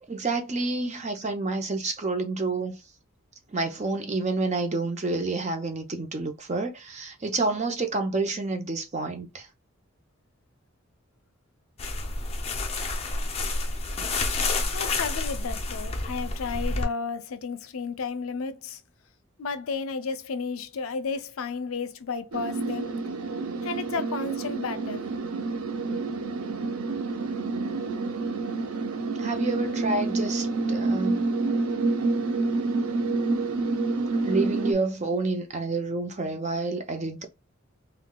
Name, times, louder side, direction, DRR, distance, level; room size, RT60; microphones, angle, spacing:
voice 1, 0.1-2.8 3.5-9.4 29.2-31.2 34.2-37.3, right 3 dB, 30° right, 0.6 m, -29 dB
sound 1, 11.8-16.8, left 3 dB, 30° left, 0.5 m, -29 dB
voice 2, 14.7-18.8 19.4-22.9 23.6-25.1, left 5 dB, 80° left, 0.5 m, -32 dB
sound 2, 22.3-34.7, right 3 dB, 90° right, 0.5 m, -28 dB
3.8 x 2.3 x 2.2 m
head